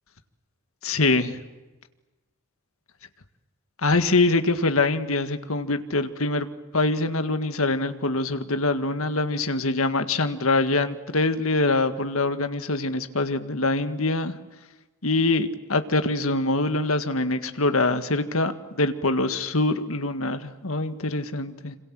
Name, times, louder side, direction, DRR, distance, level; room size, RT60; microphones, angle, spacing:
voice 1, 0.8-1.4 3.8-6.5 6.7-14.3 15.0-18.5 18.8-21.8, left 2 dB, 75° left, 9 dB, 1.9 m, -24 dB
27.5 x 26.5 x 7.7 m, 1.2 s
head